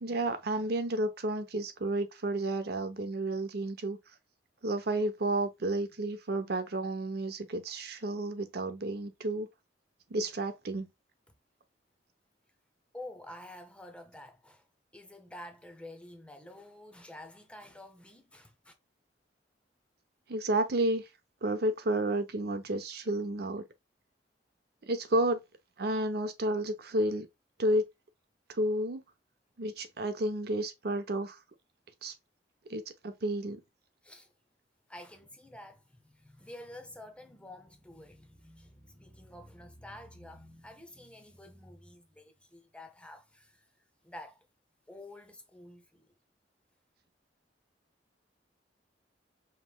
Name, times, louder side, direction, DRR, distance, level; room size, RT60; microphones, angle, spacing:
voice 1, 0.0-4.0 4.6-9.5 10.1-10.9 20.3-21.1 21.4-23.6 24.9-25.4 25.8-27.3 27.6-27.9 28.5-29.0 29.6-31.4 32.0-32.1 32.7-33.6, right 1 dB, 60° right, 0.7 m, -31 dB
voice 2, 12.9-14.7 14.9-18.7 34.0-34.3 34.9-43.7 44.0-44.5 44.9-46.1, left 1 dB, 5° left, 0.6 m, -49 dB
5.1 x 3.1 x 2.2 m
head